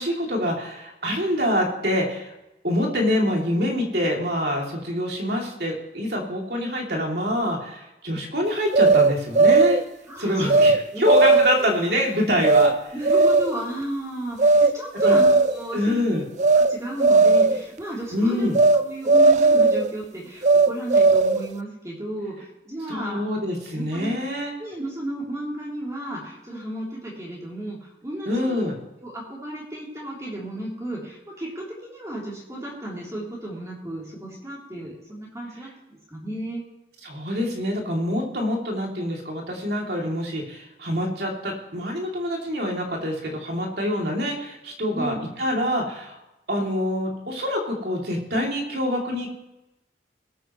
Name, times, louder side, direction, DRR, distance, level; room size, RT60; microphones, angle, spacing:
voice 1, 0.0-2.3 2.6-9.8 10.2-12.9 15.0-15.2 15.7-16.3 18.1-18.6 22.9-24.5 28.3-28.7 37.0-46.2 46.5-49.3, left 1 dB, 60° right, 0 dB, 2.9 m, -25 dB
sound 1, 8.7-9.8 10.5-10.8 11.1-11.7 12.4-12.7 13.0-13.6 14.4-14.7 15.0-15.6 16.4-16.7 17.0-17.6 18.5-18.8 19.1-19.9 20.4-21.5, right 3 dB, 40° right, 0.4 m, -16 dB
voice 2, 10.1-10.6 10.9-11.0 11.3-11.7 12.9-16.2 16.5-18.5 18.7-23.2 23.7-24.1 24.6-28.6 29.0-36.6 44.9-45.2, right 1 dB, 15° right, -5 dB, 3.4 m, -33 dB
20.5 x 9.2 x 3.2 m, 0.96 s
head